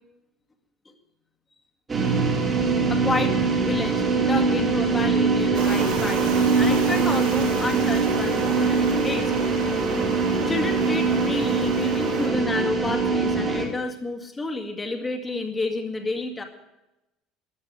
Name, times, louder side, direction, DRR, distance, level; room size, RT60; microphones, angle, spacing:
sound 1, 1.9-13.7, right 4 dB, 15° right, 3.2 m, -23 dB
voice 1, 2.9-9.3 10.5-16.4, left 2 dB, 15° left, 3 dB, 2.2 m, -30 dB
sound 2, 5.5-12.3, right 6 dB, 65° right, 7.5 m, -32 dB
15.5 x 10.0 x 8.1 m, 0.93 s
cardioid pair, 165°, 0 cm